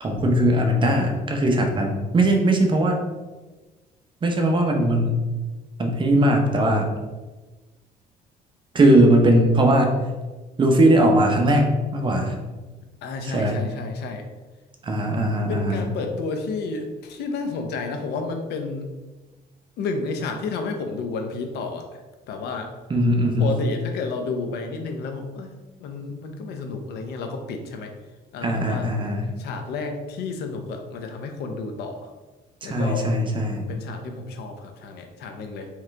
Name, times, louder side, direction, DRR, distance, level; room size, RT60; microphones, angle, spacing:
voice 1, 0.0-3.0 4.2-5.2 5.8-6.9 8.7-9.9 10.6-12.3 13.2-13.6 14.8-15.8 22.9-23.6 28.4-29.3 32.6-33.7, right 1 dB, 30° right, 3 dB, 0.7 m, -19 dB
voice 2, 13.0-14.3 15.5-18.9 19.8-22.0 22.3-22.7 23.4-27.9 28.3-28.9 29.4-32.1 32.6-33.1 33.7-35.7, left 4 dB, 75° left, 4 dB, 0.6 m, -31 dB
3.8 x 3.1 x 3.3 m, 1.2 s
cardioid pair, 110°, 17 cm